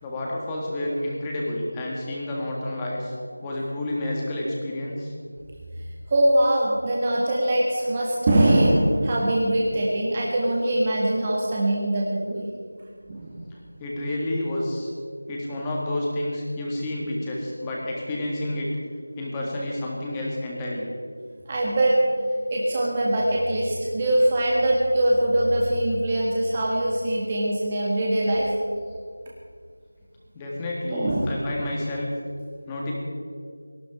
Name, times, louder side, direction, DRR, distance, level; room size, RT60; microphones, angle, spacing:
voice 1, 0.0-3.1 3.4-5.1 13.8-14.9 15.3-18.7 19.2-20.9 30.3-32.1 32.7-32.9, left 1 dB, 10° left, -3 dB, 1.7 m, -29 dB
voice 2, 6.1-12.5 13.1-13.3 21.5-22.0 22.5-28.6 30.9-31.3, right 1 dB, 20° right, -4 dB, 1.6 m, -22 dB
18.5 x 13.5 x 4.9 m, 2.1 s
figure-of-eight pair, 175°, 0 cm